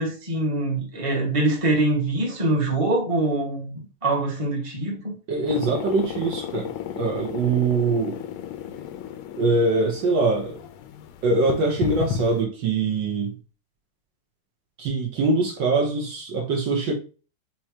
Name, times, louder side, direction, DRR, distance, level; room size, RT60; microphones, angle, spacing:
voice 1, 0.0-3.7 4.0-5.2, right 2 dB, 15° right, 1.3 m, -24 dB
voice 2, 5.3-6.7 6.9-8.2 9.3-10.6 11.2-13.4 14.8-16.9, right 3 dB, 65° right, 1.5 m, -23 dB
sound 1, 5.5-12.4, left 8 dB, 80° left, 1.5 m, -34 dB
6.0 x 3.0 x 2.8 m
omnidirectional pair, 2.4 m